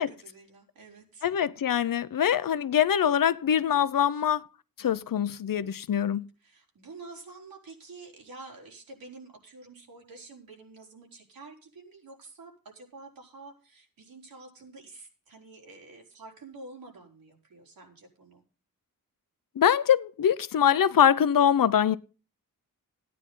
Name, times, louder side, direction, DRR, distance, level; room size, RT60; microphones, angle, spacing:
voice 1, 0.0-1.3 4.1-4.2 6.4-18.4, right 3 dB, 85° right, 4.5 m, -48 dB
voice 2, 1.2-4.4 4.8-6.3 19.6-22.0, left 9 dB, 70° left, 0.8 m, -23 dB
15.5 x 9.7 x 3.9 m
wide cardioid pair, 110°, 34 cm